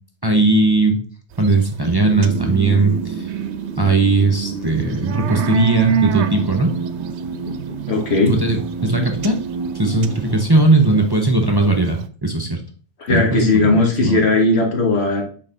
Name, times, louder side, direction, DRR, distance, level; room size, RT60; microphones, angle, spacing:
voice 1, 0.2-1.0 1.4-3.3 3.8-6.7 8.3-9.4 9.7-12.6 13.1-14.2, right 2 dB, 25° right, 2 dB, 0.6 m, -18 dB
sound 1, 1.3-3.3 3.8-12.0, right 8 dB, 85° right, 0.9 m, -27 dB
sound 2, 2.0-11.0, right 5 dB, 55° right, 1.0 m, -29 dB
voice 2, 7.9-8.3 13.0-15.2, left 2 dB, 75° left, 1 dB, 1.7 m, -17 dB
6.4 x 4.1 x 3.8 m, 0.42 s
omnidirectional pair, 1.1 m